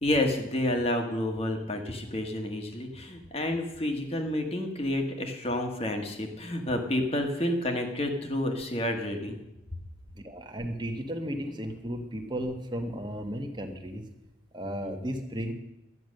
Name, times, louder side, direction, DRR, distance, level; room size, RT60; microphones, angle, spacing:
voice 1, 0.0-9.4, left 1 dB, 30° left, 4 dB, 1.6 m, -29 dB
voice 2, 10.1-14.0 14.5-15.5, equal, 25° right, 4 dB, 1.3 m, -34 dB
12.5 x 10.0 x 6.5 m, 0.94 s
head